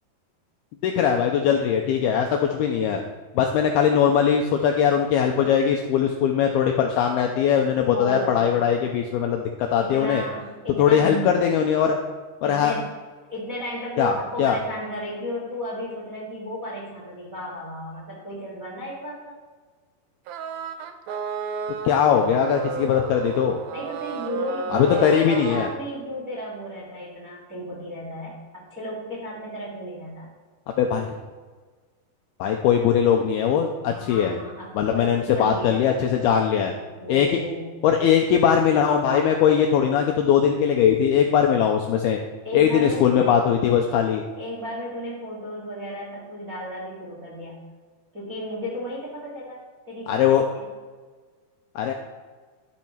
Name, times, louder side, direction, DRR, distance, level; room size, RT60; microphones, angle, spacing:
voice 1, 0.8-3.0 3.4-10.2 10.8-12.0 12.4-12.7 14.0-14.6 21.8-23.6 24.7-25.7 30.8-31.1 32.4-34.4 34.8-36.7 37.1-37.4 37.8-42.2 42.5-44.2 50.1-50.5 51.8-51.9, left 8 dB, 85° left, 3 dB, 2.3 m, -20 dB
voice 2, 7.9-8.6 9.8-11.4 12.4-13.0 13.3-19.3 23.7-30.3 33.9-35.9 37.0-37.8 42.4-43.3 44.4-47.6 48.1-49.6 49.9-50.3 50.5-50.6, equal, 35° right, -4 dB, 1.5 m, -34 dB
sound 1, 20.3-25.7, right 6 dB, 85° right, 2.0 m, -32 dB
12.0 x 7.5 x 5.6 m, 1.4 s
omnidirectional pair, 5.3 m